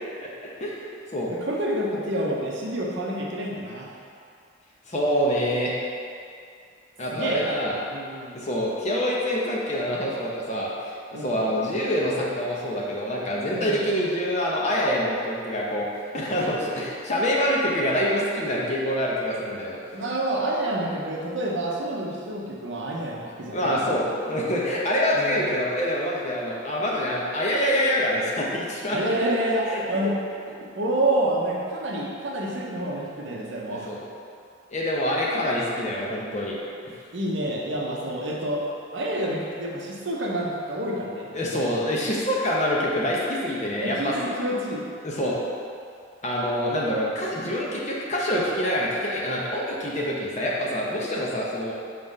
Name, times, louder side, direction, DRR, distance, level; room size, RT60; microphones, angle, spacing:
voice 1, 0.6-1.3 4.9-5.7 7.0-7.8 8.3-10.7 11.1-15.9 16.1-19.8 23.5-29.0 29.6-29.8 33.7-34.0 34.7-36.6 41.3-44.2 45.0-45.4 46.2-51.7, equal, 35° left, -4 dB, 0.8 m, -26 dB
voice 2, 1.3-3.9 7.1-7.5 7.9-8.4 11.1-11.4 13.5-13.9 19.9-24.1 25.1-25.4 28.9-30.1 30.8-33.9 37.1-38.6 38.9-41.3 43.8-44.8, right 1 dB, 65° right, -2 dB, 0.9 m, -28 dB
5.6 x 3.2 x 5.3 m, 2.4 s
head